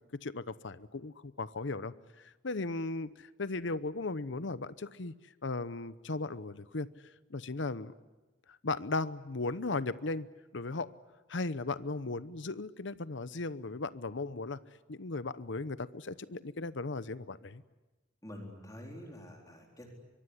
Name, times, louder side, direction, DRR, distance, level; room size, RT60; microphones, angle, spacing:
voice 1, 0.2-5.1 5.4-6.9 7.3-7.9 8.5-10.3 10.5-10.9 11.3-14.6 14.9-17.6, left 3 dB, 65° left, 15 dB, 0.9 m, -37 dB
voice 2, 18.2-19.9, left 1 dB, 20° left, 1 dB, 4.1 m, -47 dB
24.0 x 23.0 x 9.8 m, 1.1 s
head